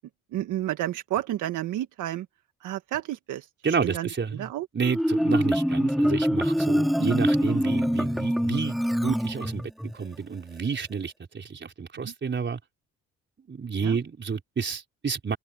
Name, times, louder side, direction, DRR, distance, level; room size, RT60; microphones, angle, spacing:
voice 1, 0.3-2.3 2.6-3.4 3.8-4.7 7.0-7.1 12.0-12.1 13.8-14.0, right 13 dB, 85° right, 1.6 m, -31 dB
voice 2, 3.6-8.7 9.0-12.6 13.5-15.4, right 5 dB, 40° right, 4.5 m, -30 dB
Marimba xylophone, 4.8-9.9, equal, ahead, 2.9 m, -24 dB
open air
cardioid pair, 90°, 30 cm